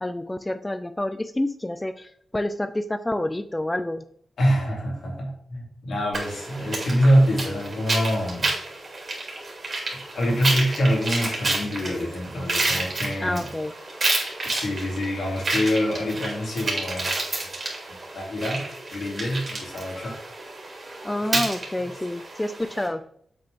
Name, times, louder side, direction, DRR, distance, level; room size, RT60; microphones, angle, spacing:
voice 1, 0.0-4.0 13.2-13.7 20.0-20.1 20.9-23.0, left 1 dB, 15° left, 11 dB, 0.4 m, -28 dB
voice 2, 4.4-8.5 10.1-13.4 14.5-17.1 17.4-17.5 18.1-18.6 18.9-20.1 21.3-21.4, equal, 80° left, -1 dB, 2.6 m, -25 dB
sound 1, 6.1-22.9, right 2 dB, 45° right, 2.7 m, -30 dB
7.6 x 5.0 x 3.5 m, 0.64 s
wide cardioid pair, 100°, 0 cm